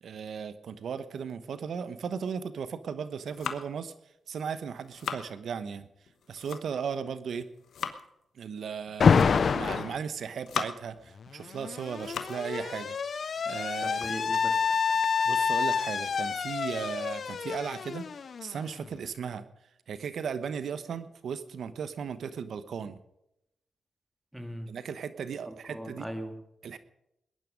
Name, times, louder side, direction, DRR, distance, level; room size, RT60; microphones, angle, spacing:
voice 1, 0.0-3.9 4.3-5.9 6.3-7.5 8.3-14.1 15.2-18.1 18.4-19.5 19.9-23.0 24.7-26.1 26.6-26.8, right 7 dB, 75° right, 13 dB, 1.0 m, -36 dB
sound 1, 3.0-3.9 4.6-5.3 6.1-6.9 7.4-8.1 8.9-9.6 10.1-11.0 11.5-12.5 12.8-12.9 13.4-15.1, left 7 dB, 80° left, 1.1 m, -39 dB
Alarm, 9.0-10.0 11.2-18.9, left 6 dB, 65° left, 0.6 m, -27 dB
voice 2, 13.8-14.7 24.3-24.7 25.5-26.4, equal, 5° right, 5 dB, 2.7 m, -39 dB
20.5 x 11.0 x 5.2 m, 0.84 s
cardioid pair, 55°, 0 cm